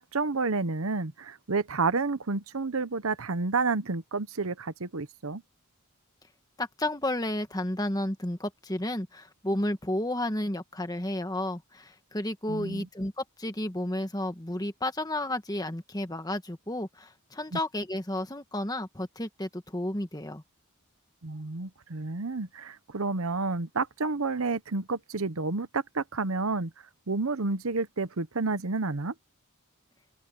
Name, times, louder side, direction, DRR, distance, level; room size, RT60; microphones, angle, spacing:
voice 1, 0.0-5.4 12.5-12.9 17.5-17.6 21.2-26.7 27.1-29.1, right 3 dB, 70° right, 1.0 m, -30 dB
voice 2, 6.6-20.4, left 1 dB, 15° left, 1.5 m, -32 dB
open air
head